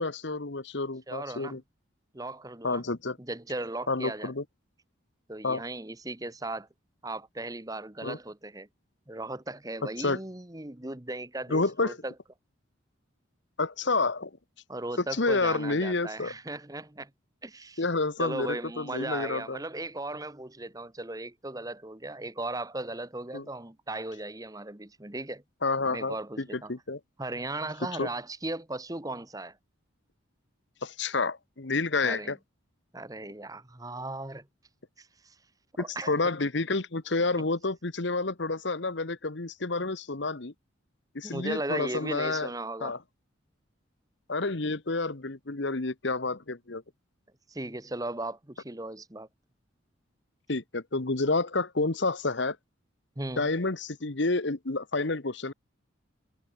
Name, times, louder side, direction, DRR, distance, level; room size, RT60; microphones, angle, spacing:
voice 1, 0.0-1.6 2.6-3.2 3.9-4.4 5.4-5.6 8.0-8.2 10.0-10.2 11.5-12.0 13.6-14.3 15.2-16.3 17.8-19.6 23.3-23.4 25.6-27.0 28.0-28.1 30.8-32.4 35.9-40.5 41.1-42.5 42.8-43.0 44.3-46.8 50.5-52.6 53.4-55.5, left 3 dB, 60° left, 1.2 m, -29 dB
voice 2, 1.1-1.6 2.1-2.8 3.2-4.3 5.3-6.7 7.0-8.7 9.1-12.1 14.7-17.1 17.4-17.8 18.2-25.4 25.9-26.7 27.2-29.6 32.0-32.3 32.9-34.5 35.0-35.4 35.8-36.1 41.2-43.0 47.5-49.3 53.2-53.5, right 2 dB, 15° right, 1.2 m, -37 dB
head